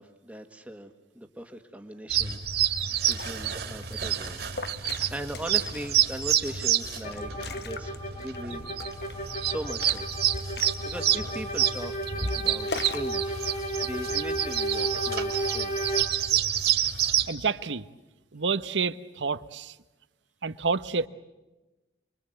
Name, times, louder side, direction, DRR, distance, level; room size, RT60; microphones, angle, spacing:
voice 1, 0.0-4.4 4.8-8.7 9.4-10.0 10.6-12.0 12.3-13.3 13.8-15.9, right 1 dB, 10° right, 5 dB, 1.7 m, -39 dB
sound 1, 2.1-17.3, right 10 dB, 60° right, 2.5 m, -28 dB
Liquid, 2.8-13.1, left 4 dB, 60° left, 1.1 m, -43 dB
sound 2, 7.0-16.0, right 1 dB, 45° left, 4.9 m, -33 dB
voice 2, 17.3-17.8 18.3-19.7 20.4-21.1, right 5 dB, 80° right, 13 dB, 1.0 m, -29 dB
29.0 x 23.0 x 8.0 m, 1.1 s
head